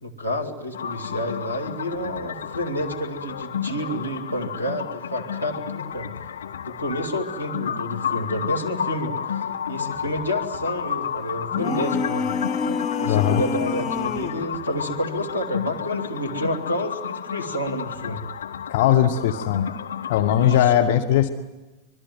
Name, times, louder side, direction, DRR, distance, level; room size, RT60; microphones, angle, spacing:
voice 1, 0.0-6.1 6.6-9.1 9.7-12.3 13.0-18.2 20.4-20.7, equal, 90° left, 0 dB, 2.9 m, -29 dB
sound 1, 0.7-20.7, left 8 dB, 65° left, 1.3 m, -31 dB
sound 2, 11.5-14.5, left 5 dB, 30° left, 0.9 m, -27 dB
voice 2, 13.1-13.4 18.7-19.7 20.1-21.3, left 10 dB, 50° left, 8 dB, 1.2 m, -19 dB
25.0 x 22.5 x 9.3 m, 1.1 s
figure-of-eight pair, 90°, 0 cm